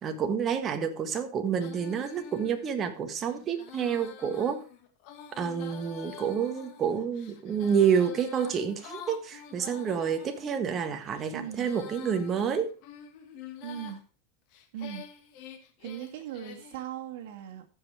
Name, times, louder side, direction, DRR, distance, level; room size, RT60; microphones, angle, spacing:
voice 1, 0.0-4.6 5.4-12.7, right 7 dB, 25° right, 1.5 m, -29 dB
Female singing, 1.5-10.4 11.0-14.0 14.5-16.8, left 8 dB, 50° left, 2.0 m, -47 dB
voice 2, 11.3-11.7 13.6-14.0 14.7-15.0 15.8-17.7, right 10 dB, 65° right, 2.1 m, -39 dB
14.0 x 5.6 x 4.7 m
supercardioid pair, 140°, 0 cm